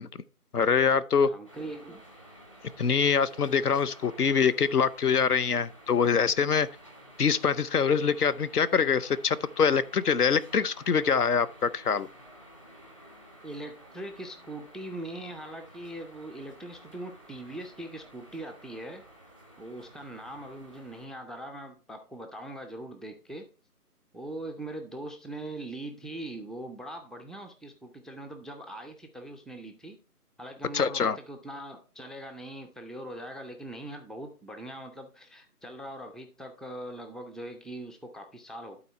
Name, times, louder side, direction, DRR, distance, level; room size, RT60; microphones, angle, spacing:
voice 1, 0.5-1.3 2.8-6.7 7.2-12.1 30.7-31.2, left 6 dB, 75° left, 0.8 m, -24 dB
voice 2, 1.2-2.0 13.4-19.0 19.6-23.5 24.1-30.0 30.4-38.8, right 1 dB, ahead, 0.4 m, -41 dB
sound 1, 1.5-21.1, right 1 dB, 20° left, 0.9 m, -52 dB
11.5 x 4.1 x 4.4 m
figure-of-eight pair, 175°, 46 cm